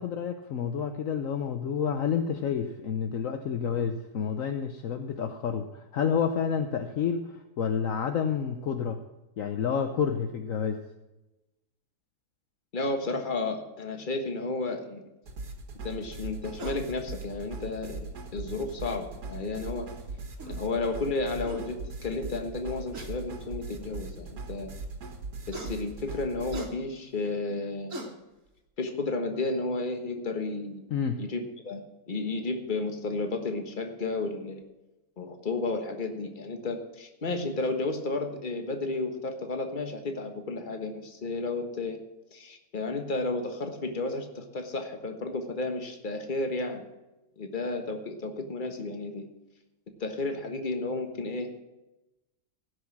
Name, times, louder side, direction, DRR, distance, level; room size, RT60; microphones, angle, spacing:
voice 1, 0.0-9.0 9.4-10.8 30.9-31.2, left 7 dB, 60° left, 7 dB, 1.1 m, -29 dB
voice 2, 12.7-15.0 15.8-19.9 20.5-24.7 25.5-28.0 28.8-30.8 31.2-34.6 35.2-42.0 42.3-46.8 47.4-49.3 50.0-51.6, left 3 dB, 35° left, 6 dB, 1.5 m, -32 dB
sound 1, 15.3-26.6, right 3 dB, 85° right, 2.1 m, -40 dB
sound 2, 16.6-16.9 18.3-18.4 20.0-20.1 20.4-20.6 21.1-21.2 21.5-21.7 22.9-23.1 23.9-24.0 25.5-25.7 26.5-26.7 27.5-27.6 27.9-28.1, right 1 dB, 55° right, 1.9 m, -39 dB
16.5 x 6.4 x 6.0 m, 0.99 s
omnidirectional pair, 1.7 m